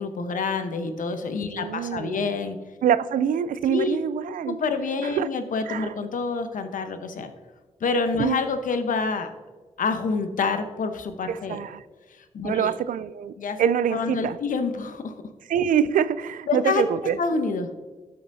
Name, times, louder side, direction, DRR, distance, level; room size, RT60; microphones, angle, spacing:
voice 1, 0.0-2.6 3.7-4.0 4.5-7.3 7.8-9.3 9.8-11.6 12.1-12.7 13.4-13.6 13.9-15.2 16.5-16.8 17.2-17.7, left 4 dB, 70° left, 8 dB, 1.0 m, -27 dB
voice 2, 1.5-2.3 2.8-4.6 5.0-5.3 5.7-5.9 8.2-8.4 11.3-11.8 12.4-13.3 13.6-14.4 15.5-17.2, right 8 dB, 75° right, 16 dB, 0.4 m, -25 dB
12.5 x 5.8 x 2.7 m, 1.4 s
supercardioid pair, 45°, 14 cm